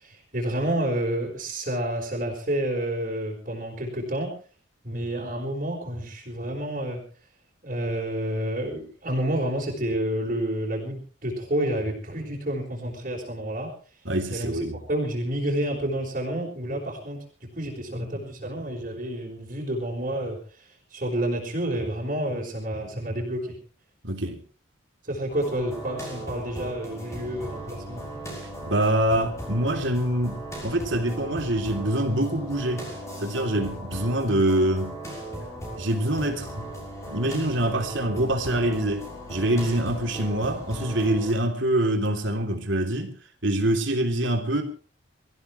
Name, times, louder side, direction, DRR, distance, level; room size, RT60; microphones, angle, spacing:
voice 1, 0.0-4.3 4.8-7.0 7.6-13.7 14.3-17.2 17.5-23.6 25.0-28.1, right 1 dB, 40° right, 4.7 m, -29 dB
voice 2, 14.0-14.8 24.0-24.4 28.7-32.8 33.2-35.0 35.8-36.7 37.1-39.0 39.3-43.1 43.4-44.6, right 1 dB, 70° right, 3.3 m, -25 dB
sound 1, 25.3-41.3, right 1 dB, 15° left, 6.3 m, -37 dB
25.5 x 15.0 x 3.3 m
head